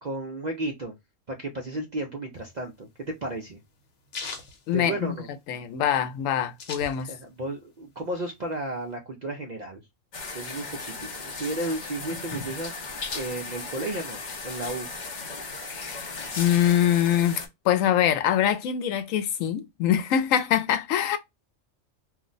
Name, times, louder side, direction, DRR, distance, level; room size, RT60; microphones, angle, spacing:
voice 1, 0.0-0.9 1.3-3.6 4.7-5.3 7.0-9.8 10.3-14.2 14.4-14.9, right 2 dB, 60° right, 0.4 m, -33 dB
sound 1, 2.4-5.5 5.9-6.0 6.1-7.4 7.8-8.9, left 4 dB, 65° left, 1.1 m, -40 dB
voice 2, 4.7-5.1 5.5-7.1 15.7-21.2, left 10 dB, 90° left, 1.0 m, -24 dB
sound 2, 10.1-17.5, left 3 dB, 45° left, 0.7 m, -36 dB
2.4 x 2.1 x 3.7 m
omnidirectional pair, 1.3 m